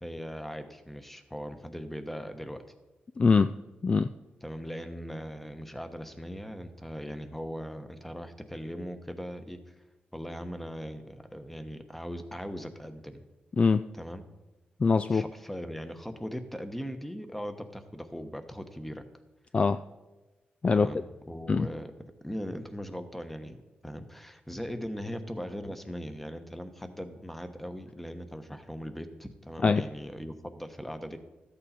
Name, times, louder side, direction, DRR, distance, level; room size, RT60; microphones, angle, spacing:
voice 1, 0.0-2.6 4.4-9.7 10.1-13.2 14.0-14.3 15.1-19.0 20.7-21.9 22.2-23.6 23.8-31.2, equal, 5° left, 8 dB, 1.1 m, -39 dB
voice 2, 3.2-3.5 3.8-4.1 13.6-13.9 14.8-15.2 19.5-19.8 20.6-20.9 21.5-21.7 29.6-29.9, left 4 dB, 35° left, 11 dB, 0.3 m, -23 dB
13.5 x 8.5 x 4.2 m, 1.1 s
cardioid pair, 85°, 3 cm